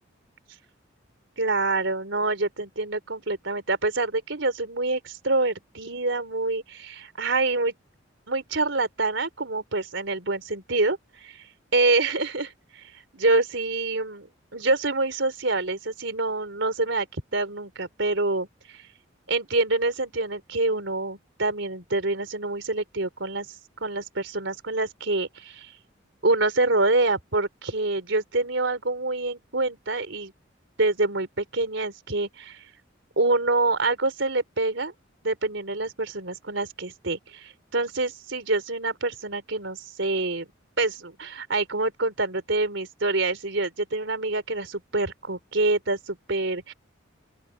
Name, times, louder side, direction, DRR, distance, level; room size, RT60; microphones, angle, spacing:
voice 1, 1.4-7.7 8.3-11.4 11.7-18.8 19.3-23.5 23.8-25.7 26.2-30.3 30.8-32.6 33.2-34.9 35.2-40.5 40.8-46.7, right 2 dB, 75° right, 3.8 m, -26 dB
open air
head